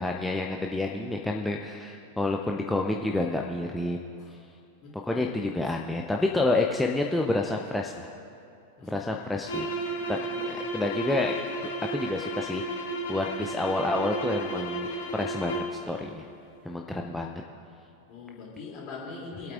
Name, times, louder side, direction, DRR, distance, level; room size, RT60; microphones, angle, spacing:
voice 1, 0.0-4.0 4.9-8.1 8.8-9.7 10.1-10.2 10.4-11.3 11.9-12.8 13.1-16.3 16.6-17.4, left 2 dB, 5° left, 0 dB, 0.6 m, -29 dB
voice 2, 4.8-5.7 8.8-9.7 9.9-10.6 16.9-17.1 18.1-19.5, left 4 dB, 40° left, -3 dB, 3.0 m, -44 dB
sound 1, 9.4-15.8, right 1 dB, 60° left, 1.8 m, -33 dB
25.5 x 8.7 x 2.5 m, 2.6 s
figure-of-eight pair, 90°, 0 cm